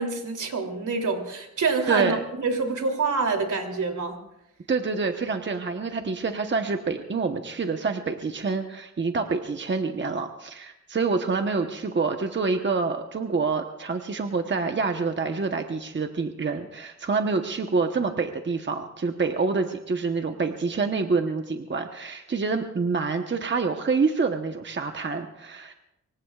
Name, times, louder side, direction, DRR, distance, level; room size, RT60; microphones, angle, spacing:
voice 1, 0.0-4.2, right 4 dB, 75° right, 2 dB, 3.1 m, -26 dB
voice 2, 1.9-2.2 4.7-25.7, right 4 dB, 35° right, 5 dB, 1.1 m, -27 dB
25.0 x 23.5 x 2.4 m, 0.85 s
wide cardioid pair, 105°, 31 cm